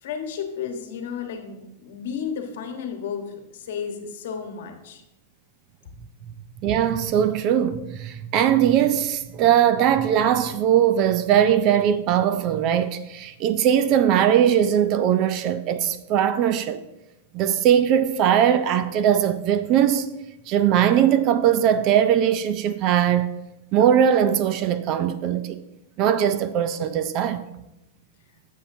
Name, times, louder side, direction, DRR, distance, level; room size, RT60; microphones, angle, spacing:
voice 1, 0.0-5.0, left 7 dB, 60° left, 1.2 m, -33 dB
voice 2, 6.6-16.8 17.3-20.1 20.5-23.3 23.7-25.6 26.0-27.4, right 9 dB, 30° right, 0.3 m, -20 dB
10.0 x 7.2 x 2.7 m
supercardioid pair, 170°, 0 cm